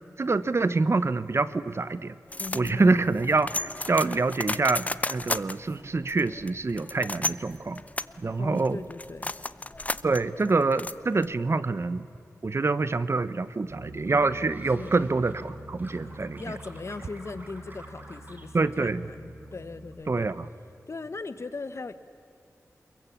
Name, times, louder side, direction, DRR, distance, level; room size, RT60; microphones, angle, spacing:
voice 1, 0.2-2.1 2.5-7.8 8.2-8.8 10.0-12.1 12.4-16.4 18.5-19.0 20.1-20.3, right 3 dB, 50° right, 15 dB, 1.0 m, -26 dB
sound 1, 2.3-11.5, left 2 dB, 25° left, 0.7 m, -34 dB
voice 2, 2.4-3.0 8.4-9.3 14.7-14.9 16.2-20.3 20.9-21.9, left 3 dB, 55° left, 13 dB, 1.3 m, -39 dB
Bass guitar, 13.7-19.9, right 2 dB, 85° right, 6.6 m, -45 dB
sound 2, 14.0-15.5 15.8-18.5 18.8-19.5 19.8-20.3, right 1 dB, 35° right, 4.4 m, -50 dB
28.5 x 22.0 x 8.7 m, 2.6 s
wide cardioid pair, 85°, 6 cm